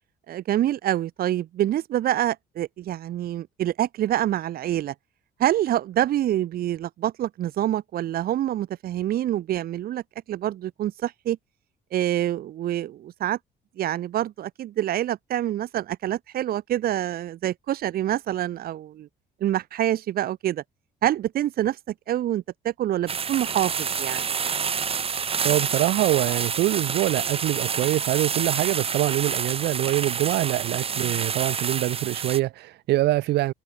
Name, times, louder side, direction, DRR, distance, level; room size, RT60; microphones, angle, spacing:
voice 1, 0.3-4.9 5.4-10.0 10.3-11.4 11.9-13.4 13.8-19.1 19.4-20.6 21.0-21.8 22.1-24.3, right 12 dB, 60° right, 2.0 m, -26 dB
sound 1, 23.1-32.4, right 6 dB, 35° right, 2.7 m, -28 dB
voice 2, 25.4-33.5, right 16 dB, 80° right, 2.8 m, -24 dB
cardioid pair, 110°, 17 cm